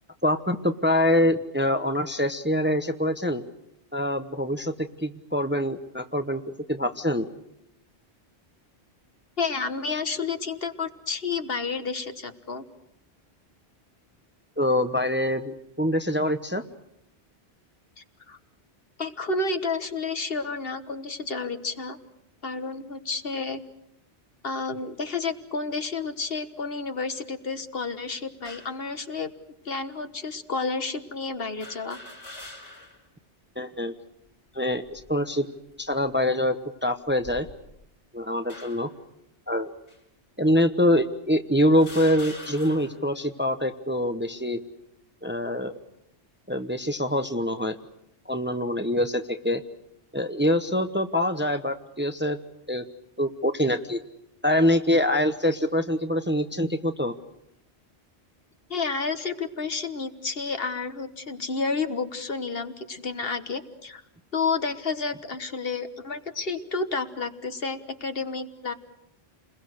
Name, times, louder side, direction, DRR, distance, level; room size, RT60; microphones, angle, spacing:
voice 1, 0.2-3.4 3.9-6.4 6.7-7.3 14.6-16.6 33.6-33.9 34.5-35.5 35.8-36.6 36.8-37.5 38.1-38.9 39.5-39.7 40.4-44.6 45.2-45.7 46.5-47.8 48.3-49.6 50.1-52.4 52.7-52.8 53.2-54.0 54.4-57.1, left 1 dB, 10° right, 8 dB, 0.9 m, -24 dB
voice 2, 9.4-12.6 18.0-18.4 19.0-22.0 22.4-23.6 24.4-29.3 29.6-32.0 58.7-64.0 64.3-68.7, left 4 dB, 60° left, 9 dB, 1.6 m, -30 dB
sound 1, 28.4-28.8 29.7-29.8 31.6-33.1 33.5-33.6 34.7-35.2 35.9-36.1 37.1-37.9 38.5-39.0 39.9-40.0 40.9-41.0 41.7-43.1, left 2 dB, 80° left, 5.2 m, -44 dB
29.5 x 21.5 x 6.5 m, 0.79 s
omnidirectional pair, 1.1 m